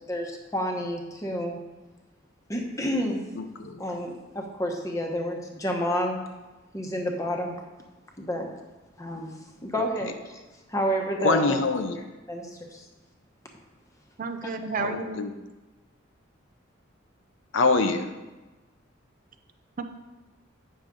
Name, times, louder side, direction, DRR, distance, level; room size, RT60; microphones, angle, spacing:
voice 1, 0.0-1.6 2.5-3.2 3.8-6.3 6.7-7.6 8.2-8.5 9.0-9.3 9.6-10.4 10.7-11.6 12.3-12.8, equal, 15° left, 2 dB, 1.0 m, -29 dB
voice 2, 3.4-3.8 9.8-10.1 11.2-12.0 14.8-15.3 17.5-18.1, left 3 dB, 65° left, 7 dB, 0.6 m, -25 dB
voice 3, 14.2-15.2 19.8-19.9, right 4 dB, 40° right, 8 dB, 0.5 m, -31 dB
8.9 x 6.5 x 3.7 m, 1.2 s
head